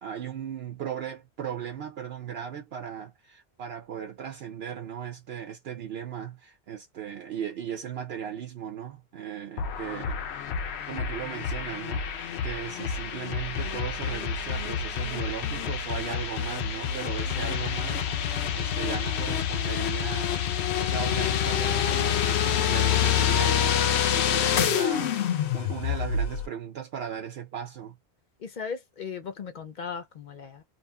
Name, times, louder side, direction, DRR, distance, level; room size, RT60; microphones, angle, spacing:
voice 1, 0.0-10.2 10.9-20.4 20.8-23.8 24.1-27.9, right 8 dB, 75° right, 0.9 m, -37 dB
sound 1, 9.6-26.5, left 8 dB, 90° left, 0.9 m, -27 dB
voice 2, 24.4-24.8 28.4-30.6, left 6 dB, 55° left, 0.6 m, -37 dB
2.9 x 2.6 x 2.2 m
omnidirectional pair, 1.1 m